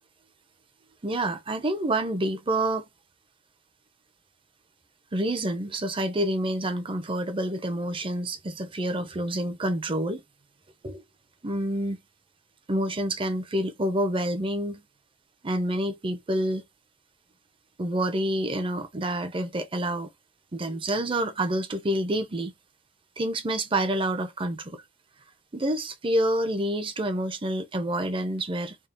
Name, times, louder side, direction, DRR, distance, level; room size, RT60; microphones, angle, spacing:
voice 1, 1.0-2.9 5.1-10.2 10.8-11.0 11.4-12.0 12.7-14.8 15.4-16.6 17.8-20.1 20.5-22.5 23.2-24.8 25.5-28.8, right 1 dB, 25° right, 0.6 m, -28 dB
3.6 x 2.3 x 3.9 m
head